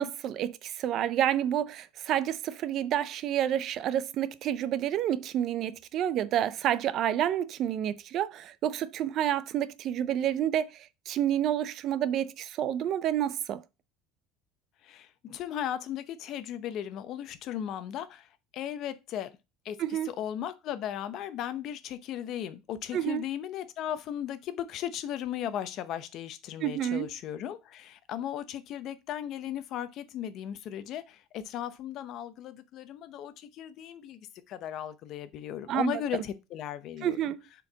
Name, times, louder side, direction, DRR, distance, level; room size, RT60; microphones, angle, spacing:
voice 1, 0.0-13.6 19.8-20.1 22.9-23.2 26.6-27.1 35.7-36.0 37.0-37.4, right 11 dB, 40° right, 0.5 m, -29 dB
voice 2, 14.8-19.3 19.6-37.2, left 10 dB, 45° left, 0.7 m, -36 dB
7.1 x 4.6 x 3.9 m
cardioid pair, 155°, 0 cm